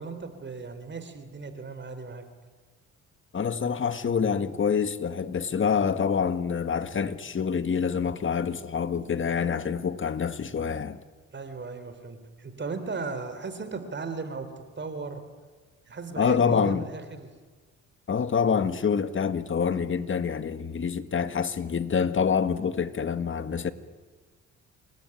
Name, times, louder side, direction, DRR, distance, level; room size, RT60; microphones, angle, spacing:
voice 1, 0.0-2.2 11.3-15.2 15.9-17.3, right 4 dB, 35° right, 3.7 m, -37 dB
voice 2, 3.3-11.0 16.2-16.9 18.1-23.7, left 6 dB, 40° left, 1.9 m, -26 dB
28.0 x 21.5 x 9.9 m
cardioid pair, 90°, 30 cm